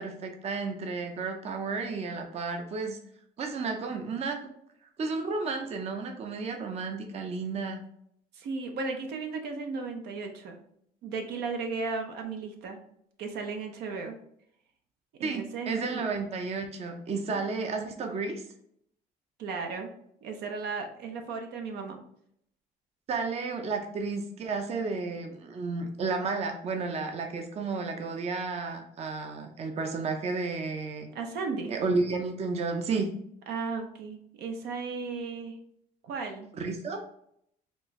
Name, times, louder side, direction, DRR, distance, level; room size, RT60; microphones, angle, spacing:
voice 1, 0.0-3.0 3.4-4.4 5.0-7.8 15.2-18.4 23.1-31.1 31.7-33.1 36.6-37.0, right 4 dB, 40° right, 4 dB, 0.6 m, -32 dB
voice 2, 8.3-10.6 11.0-12.8 13.2-14.2 15.2-16.0 17.3-17.4 19.4-19.9 20.2-22.0 31.1-31.7 33.5-35.6 36.0-36.5, right 4 dB, 75° right, 4 dB, 0.7 m, -35 dB
4.3 x 2.3 x 3.1 m, 0.71 s
cardioid pair, 110°, 17 cm